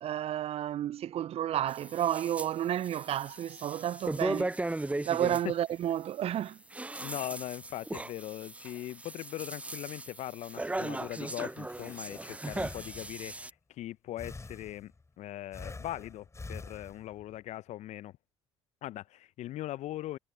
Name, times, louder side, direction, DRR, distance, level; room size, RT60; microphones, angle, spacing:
voice 1, 0.0-6.9, right 11 dB, 45° right, 0.5 m, -32 dB
sound 1, 1.7-2.5 2.8-5.4 6.5-13.5, right 2 dB, 10° right, 0.8 m, -37 dB
voice 2, 7.0-14.9 15.2-18.1 18.8-20.2, left 14 dB, 55° left, 0.7 m, -40 dB
Breathing, 11.3-13.4 14.2-15.1 15.5-17.3, left 3 dB, 20° left, 4.9 m, -46 dB
hypercardioid pair, 60°, 14 cm